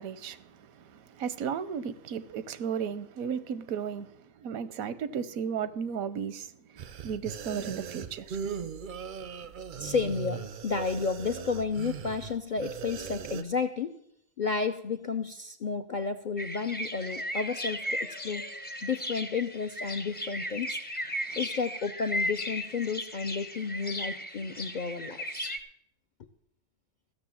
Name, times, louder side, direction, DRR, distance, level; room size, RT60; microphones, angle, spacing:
voice 1, 0.0-8.4, right 7 dB, 85° right, 1.1 m, -35 dB
sound 1, 6.8-13.4, right 7 dB, 60° right, 0.5 m, -39 dB
voice 2, 9.8-14.0 14.4-18.4 18.8-20.8 21.4-25.5 26.2-26.3, left 5 dB, 60° left, 0.5 m, -32 dB
sound 2, 16.4-25.6, equal, 10° left, 0.5 m, -36 dB
14.5 x 6.7 x 7.1 m
omnidirectional pair, 1.4 m